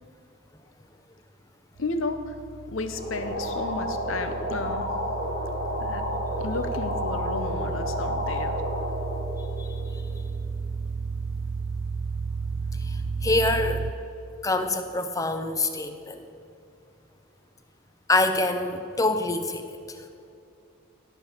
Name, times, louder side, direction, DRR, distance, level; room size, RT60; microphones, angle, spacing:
voice 1, 1.8-2.4 2.7-4.9 5.8-6.0 6.4-8.6, left 3 dB, 75° left, 8 dB, 0.8 m, -32 dB
sound 1, 1.8-13.9, right 5 dB, 65° right, 0.4 m, -33 dB
sound 2, 2.9-10.3, left 1 dB, 60° left, 2.1 m, -31 dB
voice 2, 9.6-10.0 12.7-13.8 14.4-16.3 18.1-20.0, left 2 dB, 15° left, 8 dB, 0.6 m, -26 dB
17.5 x 7.0 x 4.5 m, 2.5 s
head